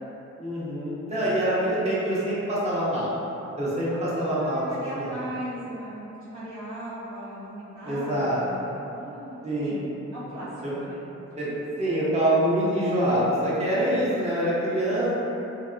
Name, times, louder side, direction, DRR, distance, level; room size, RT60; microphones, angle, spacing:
voice 1, 0.4-3.2 3.6-4.7 4.9-5.1 7.8-8.4 9.4-9.9 10.6-10.7 11.4-11.5 11.8-15.1, right 1 dB, 20° right, -9 dB, 0.7 m, -25 dB
voice 2, 3.9-11.0 11.3-11.6, right 1 dB, 85° right, -13 dB, 1.1 m, -38 dB
2.6 x 2.2 x 2.4 m, 3.0 s
cardioid pair, 65°, 30 cm